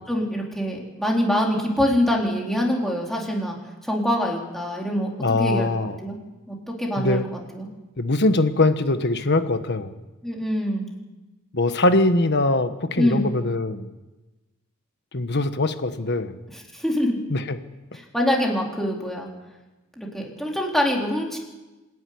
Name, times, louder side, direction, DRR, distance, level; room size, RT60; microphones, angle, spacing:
voice 1, 0.1-3.6 3.8-5.1 5.4-5.7 6.0-6.2 6.5-7.2 7.5-7.7 10.2-10.9 13.0-13.3 16.5-17.2 17.9-19.3 20.0-21.4, equal, ahead, -2 dB, 3.9 m, -24 dB
voice 2, 5.2-6.0 7.0-7.3 8.0-9.9 11.5-13.9 15.1-16.4 17.3-17.6, left 2 dB, 55° left, 10 dB, 1.3 m, -22 dB
26.5 x 11.0 x 9.6 m, 1.1 s
head